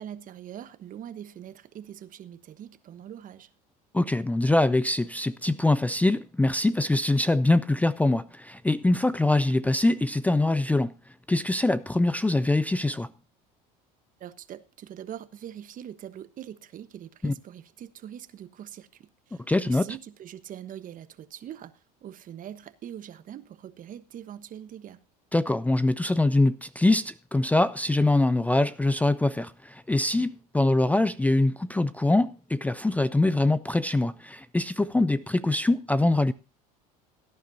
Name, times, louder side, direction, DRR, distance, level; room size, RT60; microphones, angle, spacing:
voice 1, 0.0-3.5 14.2-25.0, right 10 dB, 45° right, 1.2 m, -43 dB
voice 2, 3.9-10.9 11.3-13.1 17.2-17.3 19.5-19.9 25.3-36.3, left 2 dB, 10° left, 0.5 m, -23 dB
17.5 x 10.5 x 2.7 m
supercardioid pair, 90°, 19 cm